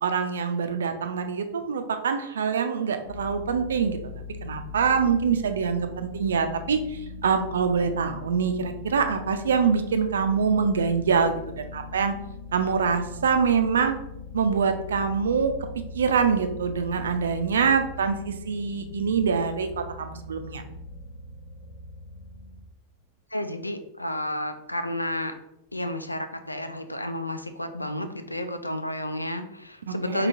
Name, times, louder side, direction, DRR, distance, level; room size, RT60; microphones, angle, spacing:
voice 1, 0.0-4.0 4.4-12.1 12.5-13.9 14.3-15.5 15.9-19.7 20.0-20.6 29.9-30.3, right 6 dB, 65° right, 7 dB, 0.4 m, -25 dB
sound 1, 3.0-22.7, left 3 dB, 60° left, 0.7 m, -41 dB
voice 2, 23.3-25.4 25.7-30.3, left 1 dB, 85° left, 8 dB, 0.3 m, -31 dB
5.0 x 2.9 x 2.5 m, 0.84 s
figure-of-eight pair, 90°, 0 cm